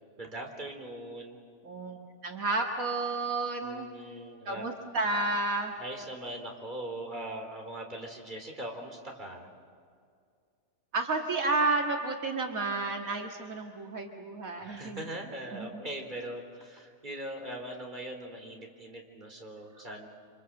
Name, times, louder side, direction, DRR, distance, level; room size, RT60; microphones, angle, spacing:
voice 1, 0.2-1.4 3.6-4.6 5.8-9.5 14.6-20.1, right 1 dB, 35° right, 2 dB, 3.9 m, -41 dB
voice 2, 1.6-2.0 2.2-3.9 4.5-5.7 10.9-15.0 15.5-15.8, right 3 dB, 80° right, 2 dB, 2.3 m, -31 dB
28.5 x 26.0 x 7.8 m, 2.2 s
omnidirectional pair, 1.4 m